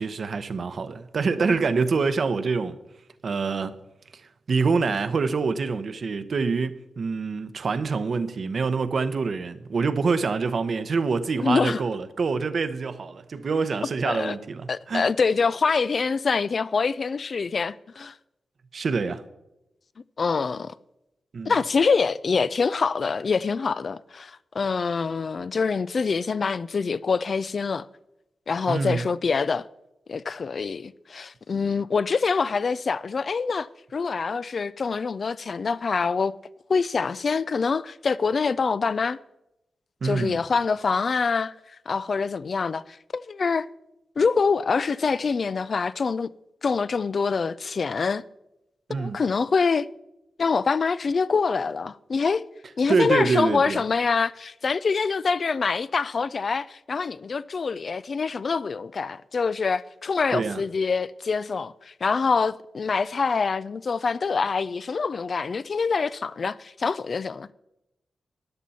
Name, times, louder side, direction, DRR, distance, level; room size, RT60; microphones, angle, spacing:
voice 1, 0.0-2.8 3.2-3.7 4.1-15.1 18.7-19.2 21.3-21.5 28.7-29.1 40.0-40.4 48.9-49.2 52.9-53.8 60.3-60.6, right 4 dB, 60° right, 0.8 m, -26 dB
voice 2, 11.4-11.8 14.0-14.4 14.7-18.1 20.2-20.7 21.5-27.9 28.5-29.7 30.1-36.3 36.7-39.2 40.0-41.5 41.9-43.7 44.2-46.3 46.6-48.2 48.9-49.9 50.4-52.4 52.8-67.5, left 5 dB, 55° left, 0.3 m, -25 dB
13.5 x 10.0 x 4.2 m
cardioid pair, 90°, 0 cm